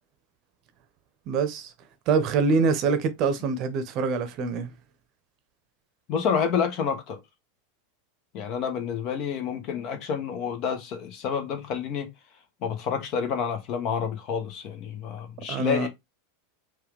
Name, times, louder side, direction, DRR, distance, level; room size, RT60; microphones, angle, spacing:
voice 1, 1.3-1.7 2.1-4.7 15.5-15.9, right 4 dB, 40° right, 0.8 m, -25 dB
voice 2, 6.1-7.2 8.3-12.1 12.6-15.9, left 7 dB, 45° left, 1.0 m, -29 dB
4.6 x 2.4 x 3.2 m
figure-of-eight pair, 85°, 0 cm